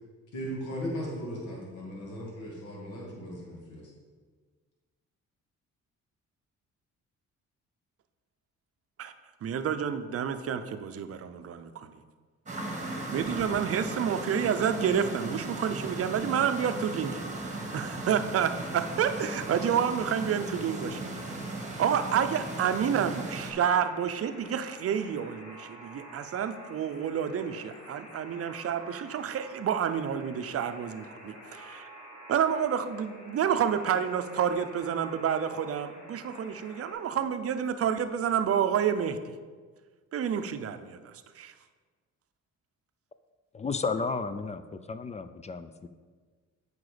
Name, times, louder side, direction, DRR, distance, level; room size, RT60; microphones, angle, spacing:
voice 1, 0.3-3.9, equal, 75° left, -4 dB, 2.4 m, -37 dB
voice 2, 9.4-11.9 13.1-21.1 21.8-31.9 32.3-39.2 40.1-41.5, right 8 dB, 50° right, 9 dB, 0.6 m, -29 dB
sound 1, 12.5-23.5, right 2 dB, 25° right, 1.4 m, -37 dB
Alarm, 18.5-36.9, equal, 55° left, 2.6 m, -49 dB
voice 3, 43.5-45.9, left 4 dB, 25° left, 11 dB, 0.4 m, -33 dB
8.0 x 5.0 x 5.0 m, 1.5 s
cardioid pair, 90°, 30 cm